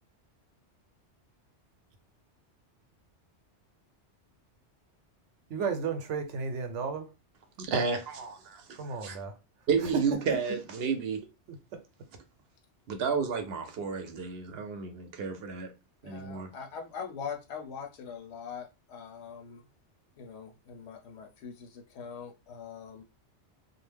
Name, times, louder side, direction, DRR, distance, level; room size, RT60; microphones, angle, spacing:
voice 1, 5.5-7.1 8.8-9.4 9.8-10.1 11.5-11.8, right 5 dB, 90° right, 1.0 m, -33 dB
voice 2, 7.6-9.2 9.7-11.2 12.9-15.7 16.0-16.5, right 5 dB, 65° right, 0.8 m, -31 dB
voice 3, 16.0-19.6 20.2-23.0, left 6 dB, 75° left, 0.9 m, -42 dB
2.5 x 2.1 x 3.2 m
omnidirectional pair, 1.2 m